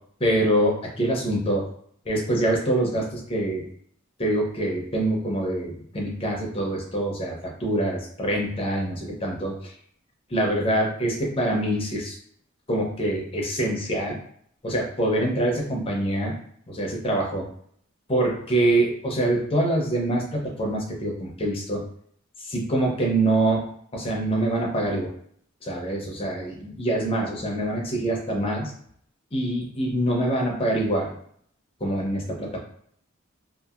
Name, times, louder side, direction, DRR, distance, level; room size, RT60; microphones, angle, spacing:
voice 1, 0.2-1.6 2.1-3.6 4.2-9.7 10.3-12.2 12.7-14.2 14.6-16.3 16.7-17.5 18.1-21.8 22.4-23.6 23.9-25.1 25.6-28.7 29.3-31.1 31.8-32.6, right 1 dB, 30° left, -1 dB, 0.7 m, -25 dB
2.8 x 2.5 x 2.4 m, 0.64 s
head